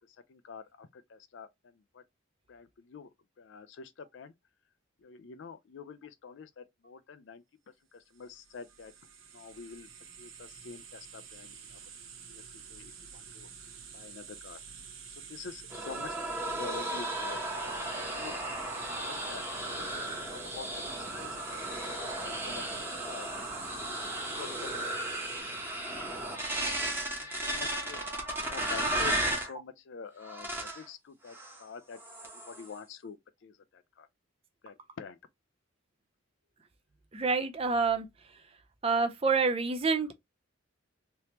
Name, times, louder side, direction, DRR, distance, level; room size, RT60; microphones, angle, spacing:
voice 1, 0.3-1.5 1.9-2.0 2.5-3.1 3.4-4.3 5.0-7.4 7.9-8.9 9.3-9.9 10.2-11.8 12.3-13.5 13.9-14.6 15.3-18.4 19.0-21.6 22.0-22.6 23.0-23.3 23.7-24.9 26.1-26.3 26.7-28.0 28.4-33.2 33.4-34.1 34.6-35.2, left 5 dB, 65° left, 0.4 m, -47 dB
sound 1, 8.1-25.4, right 6 dB, 85° right, 0.9 m, -48 dB
sound 2, 15.7-29.5 30.2-30.8 31.3-31.6 31.9-32.7, right 1 dB, 10° right, 1.0 m, -35 dB
voice 2, 37.1-38.1 38.8-40.1, right 4 dB, 30° right, 0.4 m, -27 dB
3.3 x 2.9 x 2.9 m
head